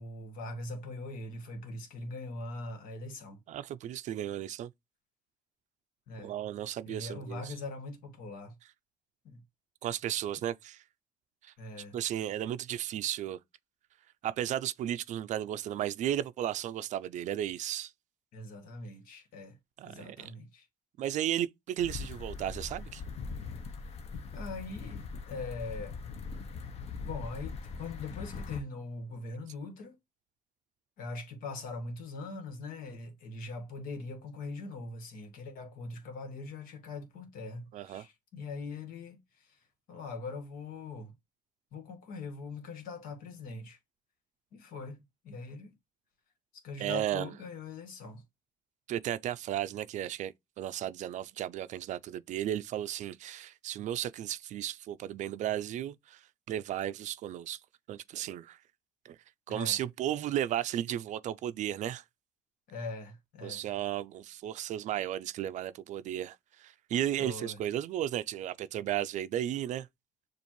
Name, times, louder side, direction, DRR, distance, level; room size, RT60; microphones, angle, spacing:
voice 1, 0.0-3.4 6.1-6.3 6.9-8.5 9.2-9.4 11.6-12.0 18.3-19.6 19.8-20.6 24.3-26.0 27.0-30.0 31.0-39.6 39.9-41.1 41.7-43.8 44.5-45.7 46.6-48.2 59.5-59.8 62.7-63.6 67.2-67.6, left 3 dB, 75° left, 1.6 m, -42 dB
voice 2, 3.5-4.7 6.2-7.5 9.8-10.8 11.4-11.5 11.9-13.4 14.2-17.9 19.8-20.3 21.0-23.0 37.7-38.1 46.8-47.3 48.9-57.6 57.9-58.6 59.1-59.2 59.5-62.0 63.4-69.9, right 11 dB, 55° right, 0.4 m, -34 dB
sound 1, 21.8-28.6, left 4 dB, 45° left, 0.8 m, -41 dB
7.0 x 2.5 x 3.0 m
cardioid pair, 150°, 15 cm